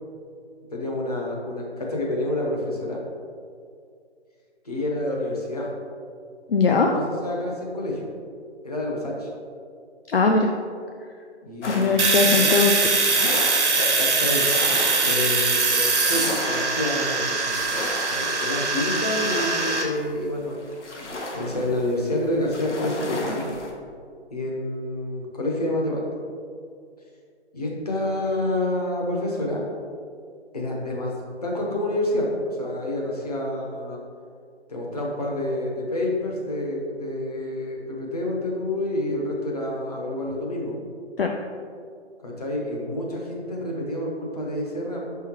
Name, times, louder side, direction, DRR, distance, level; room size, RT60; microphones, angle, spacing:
voice 1, 0.7-3.0 4.6-5.7 6.7-8.1 8.6-9.3 11.4-12.5 13.7-14.7 15.0-17.7 18.1-20.7 21.3-23.5 24.3-26.2 27.5-29.6 30.5-31.1 31.4-34.0 34.7-40.8 42.2-45.0, left 1 dB, 35° left, -2 dB, 0.9 m, -28 dB
voice 2, 6.5-6.9 10.1-10.5 11.7-13.7 41.2-41.3, left 4 dB, 55° left, 2 dB, 0.5 m, -21 dB
sound 1, 11.6-23.7, left 2 dB, 90° left, 1.2 m, -34 dB
Domestic sounds home sounds, 12.0-19.8, right 3 dB, 80° right, 1.2 m, -22 dB
5.7 x 5.6 x 3.0 m, 2.3 s
hypercardioid pair, 180°, 34 cm